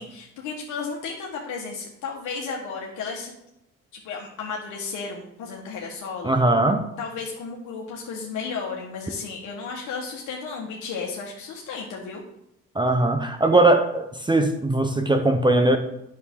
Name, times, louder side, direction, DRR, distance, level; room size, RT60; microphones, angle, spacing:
voice 1, 0.0-3.3 3.9-6.3 7.0-12.2, left 5 dB, 85° left, -2 dB, 1.4 m, -33 dB
voice 2, 6.2-6.9 12.7-15.8, right 2 dB, 15° right, 6 dB, 0.8 m, -20 dB
8.7 x 6.4 x 3.7 m, 0.79 s
cardioid pair, 90°, 30 cm